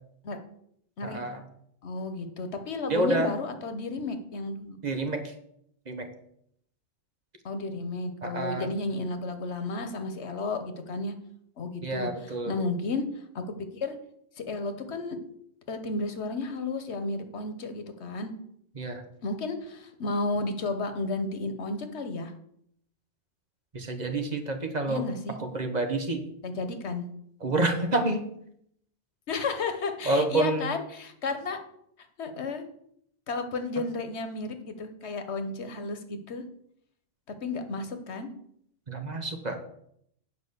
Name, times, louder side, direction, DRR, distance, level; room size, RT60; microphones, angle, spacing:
voice 1, 1.0-1.4 2.9-3.3 4.8-5.3 5.9-6.1 8.2-8.7 11.8-12.5 18.8-19.0 23.7-25.0 25.4-26.2 27.4-28.2 30.1-30.7 38.9-39.6, right 2 dB, 40° right, 5 dB, 1.2 m, -28 dB
voice 2, 1.8-4.8 7.4-11.1 11.6-13.0 13.3-14.0 14.4-15.2 15.7-18.3 19.2-22.3 24.9-25.4 26.4-27.0 29.3-31.6 32.2-32.6 33.3-36.4 37.4-38.3, left 3 dB, 90° left, 8 dB, 1.3 m, -32 dB
8.8 x 5.0 x 6.6 m, 0.71 s
omnidirectional pair, 1.1 m